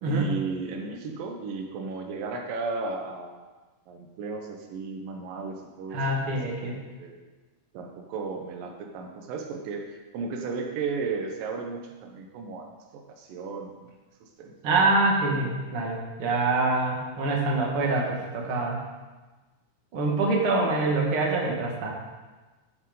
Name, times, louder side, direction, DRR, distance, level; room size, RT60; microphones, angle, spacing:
voice 1, 0.0-3.4 3.9-6.4 6.9-7.2 7.7-12.7 12.9-13.8 14.2-14.5, right 4 dB, 85° right, 3 dB, 2.7 m, -34 dB
voice 2, 5.9-6.7 14.6-18.8 19.9-21.9, right 2 dB, 45° right, -2 dB, 2.3 m, -25 dB
12.0 x 9.3 x 3.9 m, 1.2 s
omnidirectional pair, 3.9 m